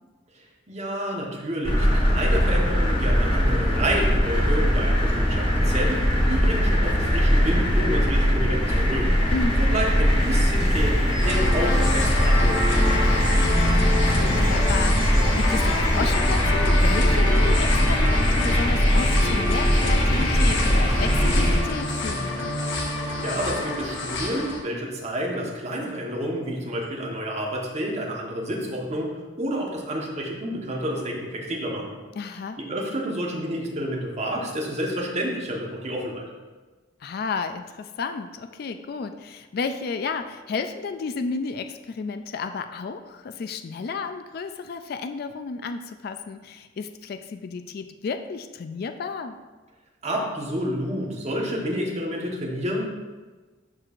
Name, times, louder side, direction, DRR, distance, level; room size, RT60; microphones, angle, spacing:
voice 1, 0.3-9.1 9.6-13.0 23.2-32.0 32.6-36.2 50.0-52.8, equal, 35° right, -2 dB, 1.2 m, -29 dB
sound 1, 1.6-21.6, equal, 30° left, 1.3 m, -21 dB
voice 2, 9.3-9.8 13.7-22.4 32.2-32.6 37.0-49.4, left 4 dB, 50° left, 8 dB, 0.3 m, -32 dB
sound 2, 10.2-16.1, equal, ahead, 2.0 m, -43 dB
sound 3, 11.2-24.6, left 2 dB, 70° left, 1.1 m, -27 dB
12.0 x 4.6 x 2.5 m, 1.3 s
head